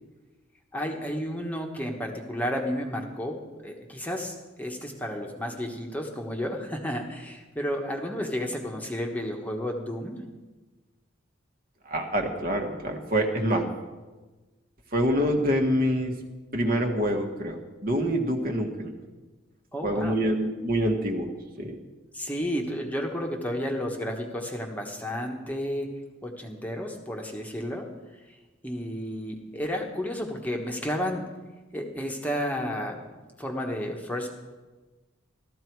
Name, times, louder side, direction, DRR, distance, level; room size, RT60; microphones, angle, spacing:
voice 1, 0.7-10.2 19.7-20.2 22.1-25.9 26.2-28.4 28.6-31.2 31.7-33.0 33.4-34.3, equal, 10° left, 1 dB, 1.2 m, -32 dB
voice 2, 11.8-13.7 14.9-16.1 16.5-18.9 19.8-21.3 21.6-21.7, equal, 45° right, 3 dB, 1.6 m, -26 dB
15.0 x 13.0 x 4.7 m, 1.2 s
head